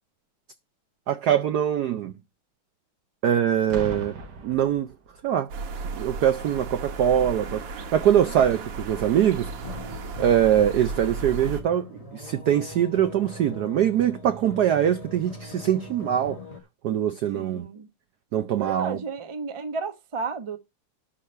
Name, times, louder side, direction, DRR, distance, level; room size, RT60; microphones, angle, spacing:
voice 1, 1.1-2.1 3.2-4.2 4.4-4.9 5.2-5.5 5.9-9.5 10.2-16.4 16.8-17.7 18.3-19.0, right 10 dB, 75° right, 0.9 m, -23 dB
Boom, 3.7-5.5 6.3-6.6, right 4 dB, 50° right, 1.8 m, -38 dB
sound 1, 5.5-11.6, right 4 dB, 90° right, 2.3 m, -35 dB
voice 2, 8.2-8.6 17.3-17.9 18.6-20.6, right 4 dB, 30° right, 0.5 m, -33 dB
sound 2, 9.5-16.6, left 2 dB, 25° left, 0.9 m, -42 dB
11.5 x 3.9 x 6.6 m
omnidirectional pair, 2.4 m